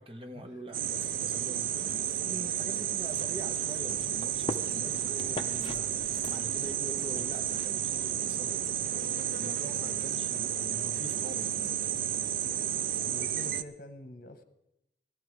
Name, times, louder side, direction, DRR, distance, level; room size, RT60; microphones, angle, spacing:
voice 1, 0.0-12.0, right 1 dB, 30° right, 1.1 m, -45 dB
sound 1, 0.7-13.6, right 10 dB, 50° right, 0.4 m, -32 dB
sound 2, 2.9-8.9, left 2 dB, 30° left, 0.7 m, -45 dB
voice 2, 13.1-14.4, left 1 dB, 50° left, 1.1 m, -47 dB
16.0 x 13.5 x 4.8 m
head